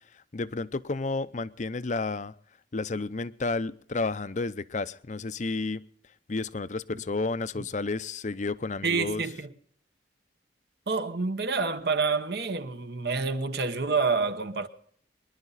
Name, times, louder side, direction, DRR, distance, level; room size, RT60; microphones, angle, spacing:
voice 1, 0.3-2.3 2.7-5.8 6.3-9.2, left 3 dB, 45° left, 0.6 m, -31 dB
voice 2, 8.8-9.5 10.9-14.7, right 4 dB, 60° right, 1.2 m, -28 dB
24.0 x 11.0 x 4.1 m
head